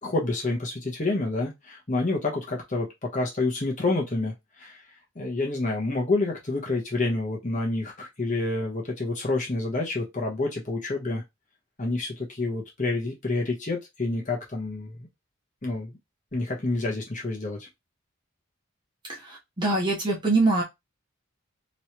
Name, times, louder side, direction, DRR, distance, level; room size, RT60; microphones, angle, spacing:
voice 1, 0.0-4.8 5.1-11.2 11.8-15.0 15.6-15.9 16.3-17.7, left 2 dB, 35° left, -1 dB, 1.0 m, -28 dB
voice 2, 19.1-20.6, right 2 dB, 20° right, -1 dB, 0.9 m, -24 dB
3.1 x 3.1 x 2.9 m, 0.20 s
head